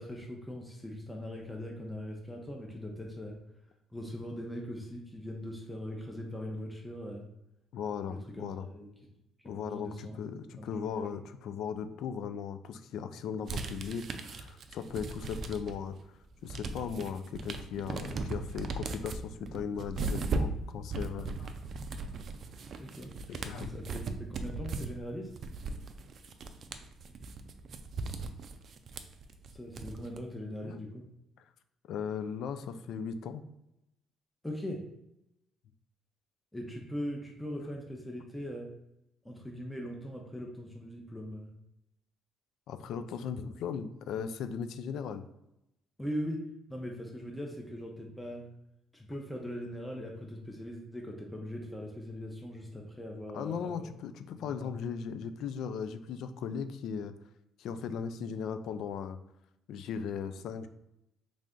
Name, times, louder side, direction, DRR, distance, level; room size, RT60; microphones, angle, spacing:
voice 1, 0.0-3.4 3.9-7.2 8.1-8.9 9.4-10.2 10.6-10.7 10.9-11.1 22.8-23.1 23.6-25.3 29.5-31.0 34.4-34.8 36.5-38.7 39.2-41.5 46.0-46.4 46.7-48.5 48.9-53.9 54.3-54.7, equal, 5° left, 0 dB, 0.6 m, -40 dB
voice 2, 7.7-8.7 9.4-16.0 16.4-21.5 23.3-23.7 30.6-30.8 31.9-33.4 42.7-45.2 53.3-57.1 57.6-59.2 59.7-60.7, left 7 dB, 70° left, 10 dB, 0.3 m, -37 dB
sound 1, 13.5-15.9 16.2-30.2, right 3 dB, 50° right, 0.4 m, -38 dB
3.3 x 2.6 x 3.6 m, 0.85 s
cardioid pair, 90°, 0 cm